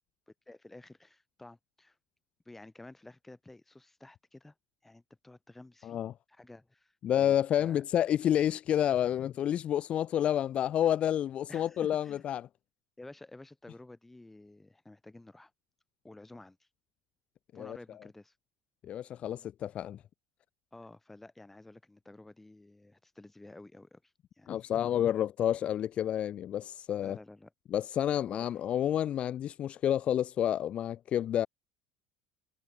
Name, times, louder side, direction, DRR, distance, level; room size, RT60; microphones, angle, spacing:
voice 1, 0.3-2.0 2.5-4.5 4.8-6.0 6.3-7.8 11.5-12.2 13.0-15.5 16.0-16.7 17.5-18.3 20.7-24.7 27.0-27.5 28.2-28.5, left 2 dB, 5° left, 3.7 m, -52 dB
voice 2, 5.8-6.1 7.0-12.4 17.5-17.8 18.8-20.0 24.5-27.2 27.7-31.5, left 10 dB, 30° left, 0.7 m, -29 dB
cardioid pair, 160°, 4 cm